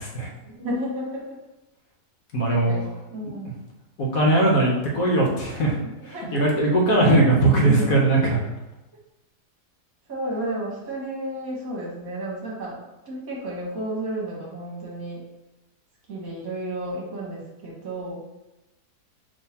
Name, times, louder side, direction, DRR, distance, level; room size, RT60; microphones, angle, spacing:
voice 1, 0.4-1.4 2.5-3.5 6.0-6.4 7.8-7.9 10.1-12.8 13.0-15.2 16.1-18.2, right 1 dB, 60° right, -4 dB, 1.5 m, -32 dB
voice 2, 2.3-2.7 3.4-3.5 4.0-5.8 6.1-8.4, right 2 dB, 60° left, -2 dB, 1.2 m, -20 dB
5.5 x 3.1 x 2.8 m, 0.97 s
omnidirectional pair, 1.8 m